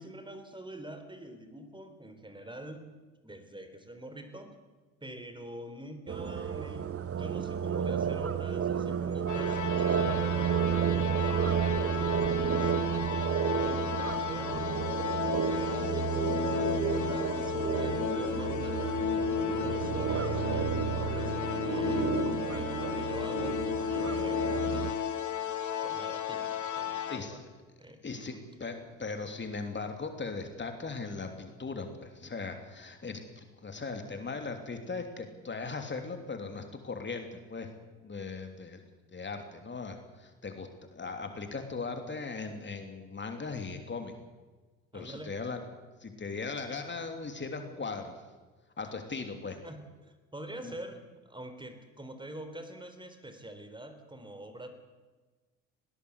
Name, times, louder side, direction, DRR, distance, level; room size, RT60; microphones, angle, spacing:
voice 1, 0.0-4.5 5.0-9.6 9.9-13.1 13.5-14.8 15.2-20.8 21.1-25.1 25.8-27.4 27.8-28.4 44.9-45.4 49.4-54.7, right 1 dB, 15° right, 8 dB, 3.8 m, -45 dB
sound 1, 6.1-24.9, right 7 dB, 35° right, 1.6 m, -31 dB
sound 2, 9.3-27.2, left 8 dB, 50° left, 3.0 m, -34 dB
voice 2, 27.1-27.4 28.0-28.3 28.6-37.7 38.0-38.8 39.1-44.1 44.9-45.6 46.0-48.2 48.8-49.6 50.6-50.7, left 4 dB, 30° left, 5 dB, 3.1 m, -38 dB
20.0 x 18.0 x 8.3 m, 1.3 s
hypercardioid pair, 65°, 37 cm